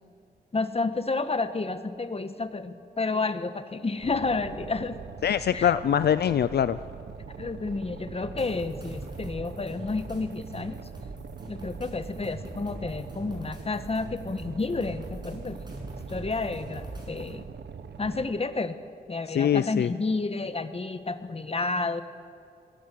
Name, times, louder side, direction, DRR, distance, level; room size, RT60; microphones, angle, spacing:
voice 1, 0.5-5.0 5.5-5.7 7.4-10.8 11.5-15.7 16.1-17.5 18.0-18.8 19.1-22.0, left 3 dB, 35° left, 10 dB, 1.4 m, -30 dB
Boat Water vehicle, 4.0-18.3, right 6 dB, 80° right, 1.2 m, -42 dB
voice 2, 5.2-6.8 19.3-19.9, left 9 dB, 70° left, 14 dB, 0.5 m, -23 dB
sound 1, 8.2-17.3, right 1 dB, 25° right, 6.7 m, -43 dB
26.0 x 18.0 x 7.7 m, 2.5 s
cardioid pair, 75°, 17 cm